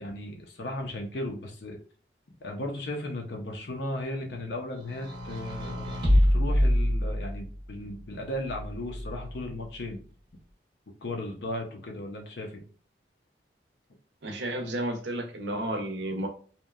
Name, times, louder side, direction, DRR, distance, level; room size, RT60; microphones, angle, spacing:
voice 1, 0.0-1.8 2.4-10.0 11.0-12.6, left 1 dB, 65° left, 2 dB, 0.6 m, -36 dB
sound 1, 4.8-7.6 8.5-9.4, equal, 25° right, 0.5 m, -26 dB
voice 2, 14.2-16.3, right 1 dB, 70° right, 3 dB, 0.6 m, -32 dB
2.8 x 2.1 x 2.3 m, 0.41 s
head